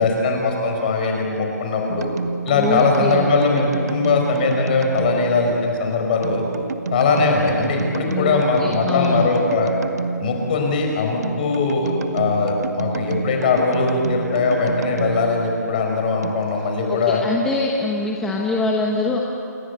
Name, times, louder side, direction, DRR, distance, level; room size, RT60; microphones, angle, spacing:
voice 1, 0.0-2.1 2.4-6.4 6.9-9.7 10.2-17.2, left 4 dB, 30° left, 2 dB, 5.1 m, -20 dB
sound 1, 1.9-16.3, right 4 dB, 65° right, 1.6 m, -29 dB
voice 2, 2.5-3.3 8.1-9.3 16.9-19.2, left 3 dB, 5° left, -2 dB, 1.1 m, -24 dB
28.5 x 22.5 x 8.2 m, 2.6 s
hypercardioid pair, 175°, 9 cm